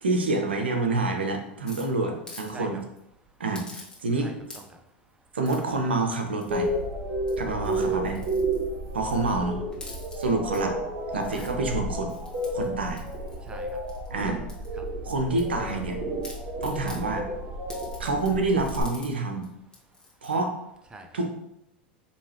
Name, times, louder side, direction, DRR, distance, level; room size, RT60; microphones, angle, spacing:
voice 1, 0.0-2.8 3.4-4.3 5.3-6.7 7.4-8.2 8.9-9.6 10.2-10.8 11.1-12.1 12.5-13.0 14.1-14.5 15.0-16.0 16.6-17.3 18.0-19.5 20.2-20.6 21.1-21.3, right 3 dB, 85° right, 3 dB, 0.6 m, -27 dB
sound 1, 1.7-2.5 2.8-3.0 3.5-4.2 4.4-4.9 5.4-5.8 6.4-6.8 7.2-9.3 9.7-10.6 11.0-11.5 12.1-14.1 14.5-15.9 16.2-17.0 17.7-19.1 19.4-19.5 19.7-20.3, left 2 dB, 10° left, 1.3 m, -47 dB
voice 2, 4.2-4.9 7.9-8.0 11.2-11.3 13.4-14.1 14.7-15.1 16.4-16.6 17.9-18.0 19.8-19.9 20.9-21.2, right 2 dB, 15° right, 4 dB, 0.6 m, -47 dB
sound 2, 6.5-18.8, right 1 dB, 45° right, 0.9 m, -32 dB
4.6 x 2.7 x 2.8 m, 0.83 s
hypercardioid pair, 85°, 6 cm